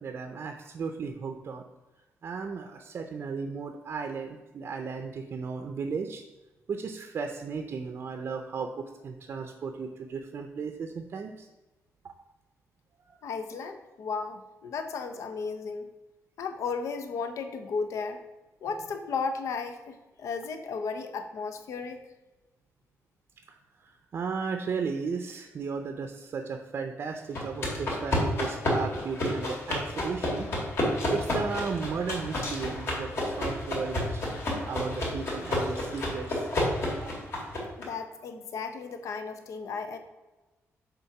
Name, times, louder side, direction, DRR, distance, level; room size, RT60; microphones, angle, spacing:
voice 1, 0.0-1.6 2.2-6.2 6.7-11.5 12.0-12.1 13.0-13.2 23.8-30.5 31.1-34.3 34.7-36.5 37.0-37.1, right 5 dB, 45° right, 5 dB, 0.5 m, -35 dB
voice 2, 13.2-15.9 16.4-18.2 18.6-22.0 37.8-40.0, left 5 dB, 75° left, 7 dB, 0.7 m, -34 dB
sound 1, 27.3-37.8, left 1 dB, 50° left, 2.2 m, -30 dB
6.8 x 3.9 x 5.9 m, 1.1 s
wide cardioid pair, 165°, 5 cm